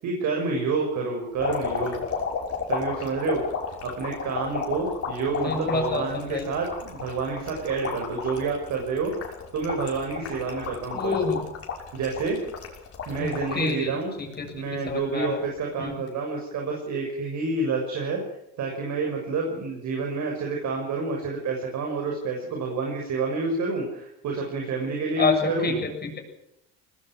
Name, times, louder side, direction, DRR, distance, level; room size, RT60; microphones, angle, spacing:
voice 1, 0.0-2.0 2.7-3.4 3.8-11.2 11.9-12.4 13.1-14.1 14.5-18.2 18.6-25.8, right 4 dB, 60° right, 1 dB, 6.5 m, -28 dB
sound 1, 1.4-13.7 14.2-14.9 15.9-16.1, left 6 dB, 45° left, 5.9 m, -33 dB
voice 2, 5.3-6.5 10.9-11.4 13.2-15.4 15.8-16.0 25.2-26.2, left 4 dB, 30° left, 4 dB, 7.0 m, -28 dB
21.0 x 19.5 x 6.3 m, 0.81 s
supercardioid pair, 100°, 32 cm